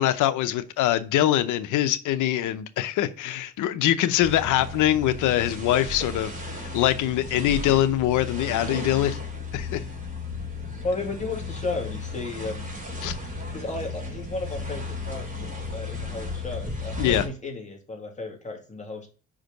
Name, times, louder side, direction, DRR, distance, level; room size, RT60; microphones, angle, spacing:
voice 1, 0.0-9.2 9.5-9.8 13.0-13.1 17.0-17.2, left 12 dB, 85° left, 13 dB, 0.7 m, -23 dB
sound 1, 4.2-17.3, left 3 dB, 25° right, 3.3 m, -34 dB
voice 2, 10.8-12.7 13.5-19.1, left 3 dB, 25° left, 1 dB, 2.4 m, -34 dB
5.3 x 5.0 x 6.4 m, 0.38 s
cardioid pair, 90°, 30 cm